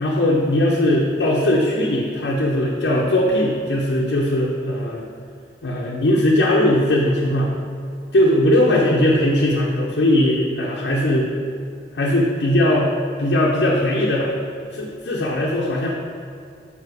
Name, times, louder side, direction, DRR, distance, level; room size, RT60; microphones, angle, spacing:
voice 1, 0.0-5.1 5.6-7.5 8.1-11.3 11.9-12.9 13.2-14.3 14.7-15.9, left 1 dB, 75° left, -3 dB, 0.7 m, -19 dB
5.5 x 4.8 x 4.7 m, 2.4 s
head